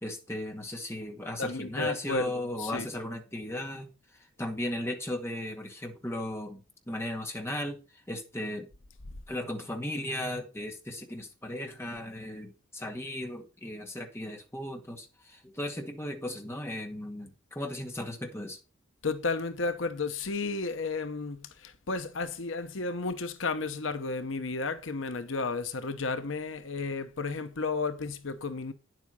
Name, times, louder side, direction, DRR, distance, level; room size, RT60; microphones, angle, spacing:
voice 1, 0.0-3.9 4.4-6.6 6.9-7.8 8.1-8.7 9.3-18.6, left 1 dB, 15° left, 2.0 m, -36 dB
voice 2, 1.4-2.9 19.0-28.7, left 3 dB, 75° left, 0.9 m, -33 dB
9.8 x 7.8 x 5.3 m
head